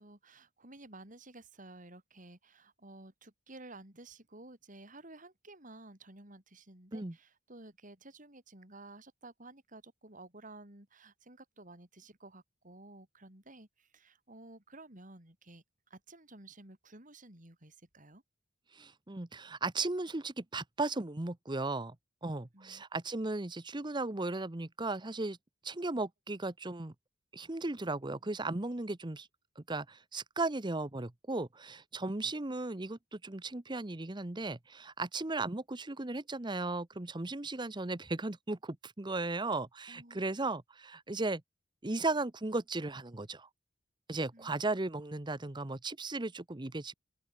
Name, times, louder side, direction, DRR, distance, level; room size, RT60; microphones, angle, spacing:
voice 1, 0.0-18.2 22.5-22.8 39.9-40.2 44.3-44.5, right 2 dB, 45° right, 5.8 m, -53 dB
voice 2, 18.7-22.0 22.2-25.4 25.6-26.9 27.3-29.3 29.6-41.4 41.8-43.5 44.1-46.9, right 2 dB, 25° right, 0.9 m, -36 dB
open air
head